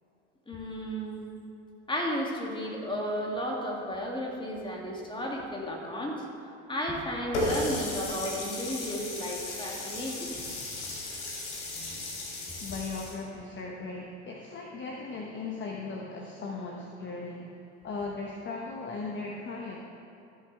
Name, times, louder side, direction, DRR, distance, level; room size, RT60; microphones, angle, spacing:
voice 1, 0.5-1.3 1.9-6.3 6.7-10.4, equal, 15° left, -2 dB, 2.3 m, -33 dB
Water tap faucet, 7.3-13.1, left 2 dB, 80° left, 2.2 m, -35 dB
voice 2, 12.6-17.6 17.8-19.8, left 3 dB, 35° left, 0 dB, 1.1 m, -37 dB
14.5 x 7.1 x 3.4 m, 2.8 s
hypercardioid pair, 75°, 34 cm